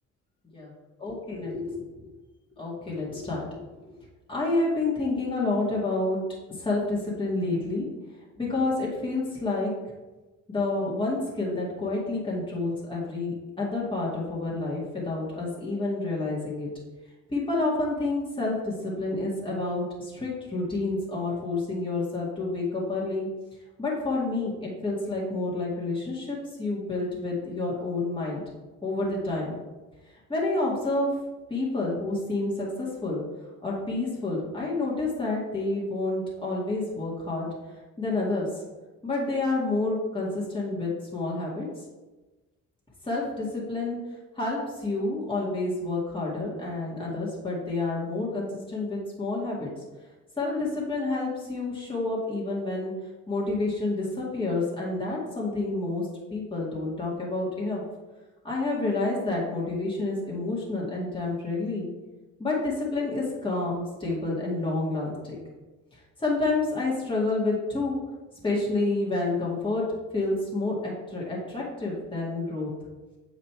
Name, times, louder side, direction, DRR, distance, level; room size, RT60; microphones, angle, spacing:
voice 1, 1.0-2.1 2.6-3.4 4.3-6.2 6.6-7.9 8.4-9.7 10.5-16.7 17.3-23.3 23.8-28.4 28.8-29.6 30.3-31.1 31.5-33.2 33.6-37.5 38.0-38.5 39.0-41.7 43.0-44.0 44.4-49.7 50.4-52.9 53.3-57.8 58.4-61.9 62.4-65.4 66.2-68.0 68.4-69.8 70.1-72.7, left 2 dB, 15° left, -5 dB, 2.1 m, -29 dB
7.5 x 4.1 x 4.5 m, 1.2 s
cardioid pair, 90°, 30 cm